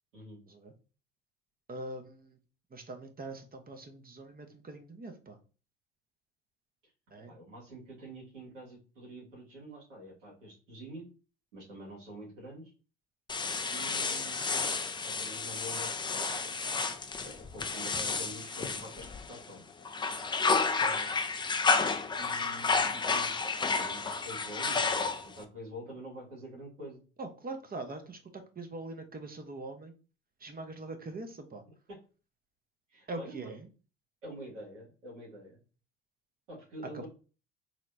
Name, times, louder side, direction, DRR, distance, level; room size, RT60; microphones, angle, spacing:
voice 1, 1.7-2.4 2.7-5.4 7.1-7.3 20.8-21.0 27.2-29.9 30.4-31.6 33.1-33.7 36.9-37.1, right 2 dB, 25° right, 6 dB, 0.9 m, -43 dB
voice 2, 7.3-11.1 11.5-12.7 13.7-14.4 14.8-16.5 17.2-19.6 20.8-21.3 22.2-27.0 31.9-32.0 32.9-33.5 34.2-35.6 36.5-37.1, right 1 dB, 90° right, -4 dB, 1.9 m, -47 dB
sound 1, 13.3-19.5 19.9-25.4, left 4 dB, 15° left, 0.4 m, -31 dB
4.2 x 3.1 x 2.6 m, 0.35 s
hypercardioid pair, 60°, 37 cm